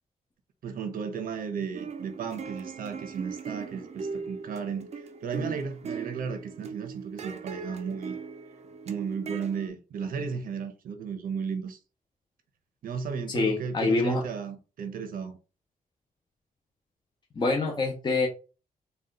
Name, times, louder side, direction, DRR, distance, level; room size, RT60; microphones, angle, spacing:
voice 1, 0.6-4.9 5.2-8.1 8.9-11.8 12.8-15.4, right 6 dB, 80° right, 0.9 m, -34 dB
sound 1, 1.7-9.7, right 5 dB, 50° right, 0.6 m, -39 dB
voice 2, 13.3-14.2 17.4-18.3, left 3 dB, 30° left, 0.8 m, -26 dB
4.0 x 2.4 x 3.8 m
wide cardioid pair, 135°, 15 cm